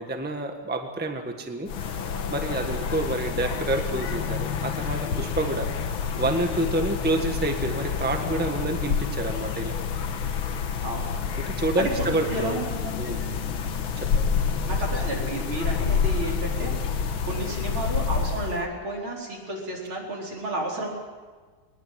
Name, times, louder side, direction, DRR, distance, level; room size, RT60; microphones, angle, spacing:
voice 1, 0.0-2.0 2.3-5.7 6.2-9.7 11.4-12.6 13.0-13.2 14.0-14.2 16.6-16.7, right 2 dB, 5° right, 4 dB, 1.4 m, -28 dB
sound 1, 1.7-18.6, left 6 dB, 75° left, 2.0 m, -28 dB
voice 2, 10.8-11.2 11.8-13.2 14.7-20.9, right 2 dB, 70° right, -2 dB, 5.4 m, -32 dB
21.5 x 20.0 x 7.6 m, 1.4 s
omnidirectional pair, 2.3 m